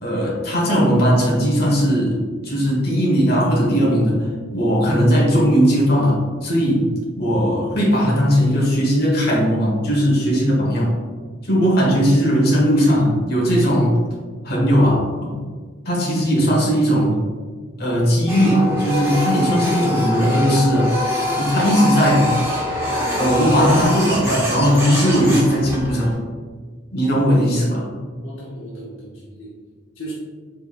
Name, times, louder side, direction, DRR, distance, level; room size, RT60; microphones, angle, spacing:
voice 1, 0.0-2.2 2.4-4.2 4.5-6.9 7.2-10.9 11.4-14.0 14.4-15.3 15.8-17.1 17.8-20.9 21.4-22.3 23.1-26.2 26.9-27.8, equal, 50° left, -4 dB, 1.2 m, -18 dB
Printer, 18.3-26.1, left 1 dB, 15° right, 0.8 m, -24 dB
voice 2, 27.6-27.9 28.2-29.5 30.0-30.1, right 1 dB, 75° left, -6 dB, 0.9 m, -36 dB
4.4 x 3.7 x 2.4 m, 1.5 s
head